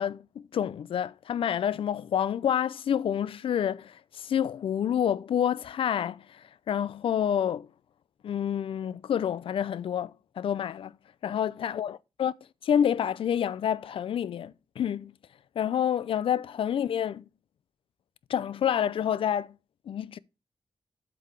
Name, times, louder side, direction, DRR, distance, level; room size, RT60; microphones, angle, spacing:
voice 1, 0.0-7.7 8.2-10.9 11.2-12.3 12.6-15.1 15.6-17.2 18.3-19.5 19.9-20.2, left 9 dB, 85° left, 0.4 m, -28 dB
7.8 x 4.8 x 5.0 m
wide cardioid pair, 150°, 9 cm